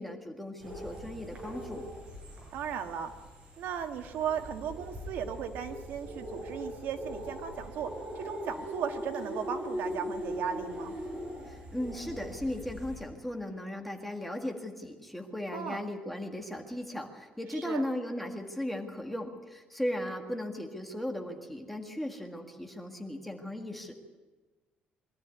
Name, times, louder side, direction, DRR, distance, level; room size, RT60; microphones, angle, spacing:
voice 1, 0.0-1.8 11.5-23.9, left 1 dB, 5° left, 2 dB, 1.8 m, -37 dB
sound 1, 0.6-13.0, equal, 30° right, 7.0 m, -41 dB
voice 2, 2.5-3.1 3.6-11.0 15.5-15.8 17.5-17.8, right 8 dB, 75° right, 6 dB, 1.6 m, -36 dB
22.5 x 13.5 x 9.6 m, 1.3 s
cardioid pair, 180°, 3 cm